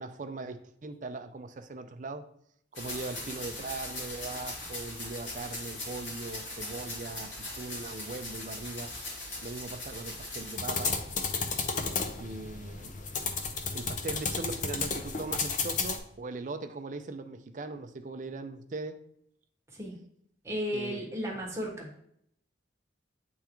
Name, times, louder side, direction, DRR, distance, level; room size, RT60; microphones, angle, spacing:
voice 1, 0.0-2.3 2.7-8.9 9.4-11.0 12.2-13.0 13.7-19.0 20.7-21.0 21.3-21.4, right 3 dB, 40° right, 8 dB, 0.4 m, -40 dB
sound 1, 2.7-10.6, left 2 dB, 70° left, 2.3 m, -40 dB
sound 2, 10.6-16.0, left 4 dB, 40° left, 0.6 m, -32 dB
voice 2, 20.4-21.9, equal, 15° right, -2 dB, 1.2 m, -34 dB
8.8 x 3.6 x 3.0 m, 0.70 s
head